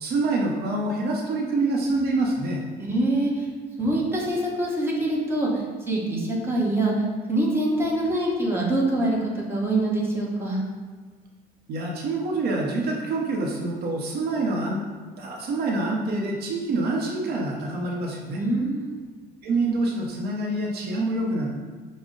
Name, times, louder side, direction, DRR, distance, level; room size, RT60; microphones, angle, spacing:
voice 1, 0.0-2.6 11.7-14.8 15.2-18.4 19.4-21.6, right 2 dB, 70° right, -1 dB, 0.7 m, -26 dB
voice 2, 2.8-3.4 3.8-7.0 7.3-10.6 18.3-18.9, right 1 dB, 15° right, -4 dB, 1.0 m, -24 dB
6.1 x 2.1 x 3.7 m, 1.5 s
cardioid pair, 110°, 17 cm